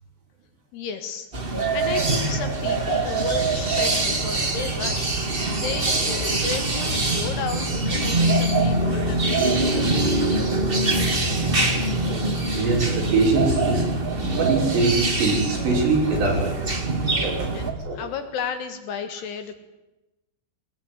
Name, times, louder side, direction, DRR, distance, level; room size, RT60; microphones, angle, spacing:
voice 1, 0.7-1.3 1.7-10.4 17.6-19.5, left 6 dB, 65° left, 8 dB, 3.4 m, -33 dB
sound 1, 1.3-17.7, right 2 dB, 35° right, 0.9 m, -23 dB
voice 2, 12.0-13.9 14.2-16.6 17.2-18.0, right 3 dB, 65° right, -1 dB, 7.9 m, -24 dB
20.0 x 19.5 x 9.6 m, 1.0 s
omnidirectional pair, 5.4 m